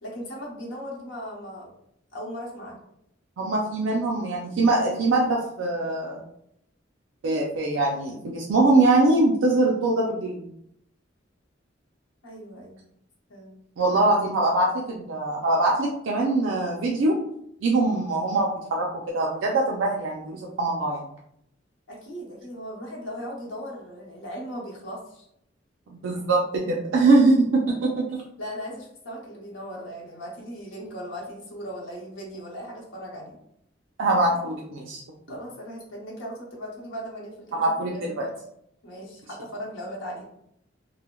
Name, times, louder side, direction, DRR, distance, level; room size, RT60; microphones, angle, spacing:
voice 1, 0.0-1.7 2.1-2.8 12.2-12.8 13.3-13.6 21.9-25.3 28.4-33.4 35.3-38.2 38.8-40.3, equal, 85° left, -3 dB, 0.8 m, -38 dB
voice 2, 3.4-6.2 7.2-10.5 13.8-17.2 17.6-21.0 25.9-27.9 34.0-35.0 37.5-38.2, right 2 dB, 85° right, -2 dB, 0.4 m, -23 dB
3.1 x 2.0 x 2.2 m, 0.73 s
head